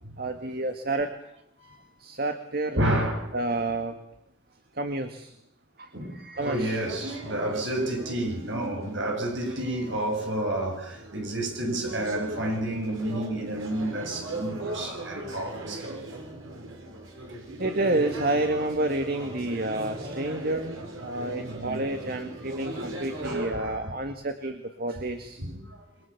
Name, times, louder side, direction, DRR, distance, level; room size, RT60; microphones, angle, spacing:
voice 1, 0.2-1.1 2.0-2.8 3.3-4.0 4.8-5.3 5.8-6.8 17.6-25.4, right 2 dB, 50° right, 2.0 m, -29 dB
voice 2, 2.8-3.4 5.9-6.2 6.4-16.0 21.5-22.2 22.8-22.9 23.2-23.9 25.4-25.8, right 1 dB, 65° right, 7.6 m, -30 dB
sound 1, 6.3-23.5, right 2 dB, 90° right, 6.9 m, -39 dB
29.5 x 23.5 x 7.3 m
head